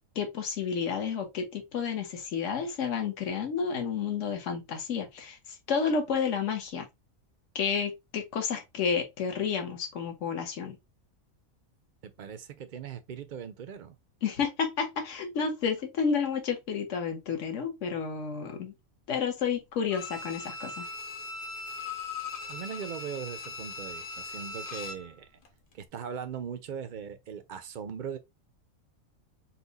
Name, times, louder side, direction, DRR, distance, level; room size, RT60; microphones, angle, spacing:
voice 1, 0.1-6.9 7.5-10.8 14.2-18.7 19.1-20.9, left 6 dB, 60° left, 1.4 m, -31 dB
voice 2, 12.0-14.0 22.5-25.3 25.7-28.2, right 7 dB, 60° right, 0.5 m, -39 dB
Bowed string instrument, 19.9-25.1 25.4-25.5, left 4 dB, 45° left, 0.8 m, -39 dB
4.3 x 2.3 x 3.9 m
omnidirectional pair, 1.4 m